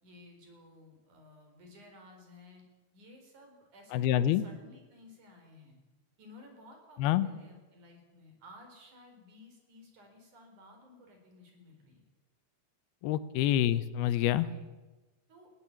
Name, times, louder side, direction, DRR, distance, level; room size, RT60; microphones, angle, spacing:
voice 1, 0.0-2.6 2.9-5.8 6.2-12.1 13.5-13.6 14.4-14.7 15.3-15.5, left 2 dB, 50° right, 4 dB, 5.7 m, -55 dB
voice 2, 3.9-4.4 7.0-7.3 13.0-14.5, left 12 dB, 85° left, 14 dB, 2.8 m, -27 dB
20.0 x 16.0 x 8.5 m, 1.2 s
omnidirectional pair, 4.4 m